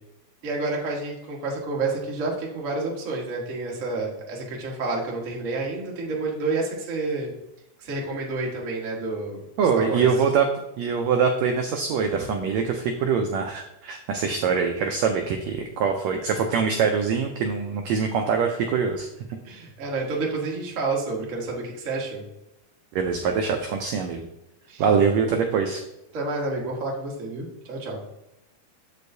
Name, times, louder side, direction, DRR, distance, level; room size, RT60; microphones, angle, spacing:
voice 1, 0.4-7.3 7.8-9.4 9.7-10.1 19.4-22.2 24.7-24.8 26.1-28.0, right 3 dB, 50° right, -2 dB, 0.9 m, -29 dB
voice 2, 9.6-10.5 10.8-19.1 22.9-24.3 24.8-25.8, right 6 dB, 80° right, 4 dB, 1.6 m, -23 dB
7.6 x 6.5 x 2.6 m, 0.89 s
omnidirectional pair, 3.7 m